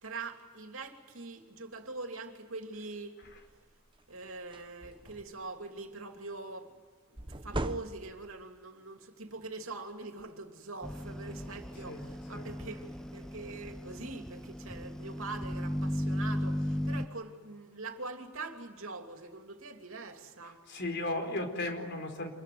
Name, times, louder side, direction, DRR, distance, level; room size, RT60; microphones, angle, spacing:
voice 1, 0.0-3.2 3.4-3.6 4.1-6.7 7.1-20.6, right 3 dB, 70° right, 5 dB, 3.0 m, -43 dB
sound 1, 3.2-3.5 4.0-4.1 4.4-5.5 7.2-8.4, right 1 dB, 25° right, 1.1 m, -39 dB
sound 2, 10.8-17.1, equal, 5° left, 0.7 m, -36 dB
voice 2, 11.9-12.5 20.7-22.3, left 2 dB, 50° left, 5 dB, 4.6 m, -36 dB
27.5 x 22.0 x 9.5 m, 1.5 s
head